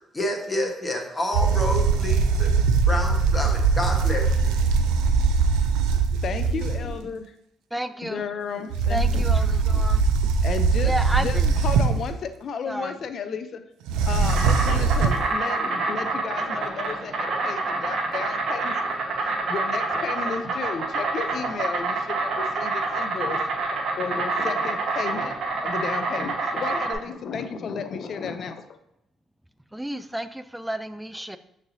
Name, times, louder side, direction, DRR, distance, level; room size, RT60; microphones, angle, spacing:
voice 1, 0.1-2.5 2.9-4.5, left 1 dB, 20° left, 1.1 m, -29 dB
sound 1, 1.3-7.0 8.7-12.2 13.9-15.3, right 5 dB, 90° right, 0.3 m, -21 dB
voice 2, 6.2-7.3 8.0-9.3 9.7-9.9 10.2-13.6 14.0-18.9 19.3-23.4 24.0-28.6, left 6 dB, 60° left, 0.4 m, -33 dB
voice 3, 7.7-8.2 8.9-10.0 10.8-11.5 12.7-13.0 29.7-31.4, right 1 dB, 5° right, 0.3 m, -31 dB
Insect, 13.9-26.9, right 3 dB, 65° right, 0.8 m, -27 dB
6.3 x 3.2 x 2.6 m
supercardioid pair, 70°, 0 cm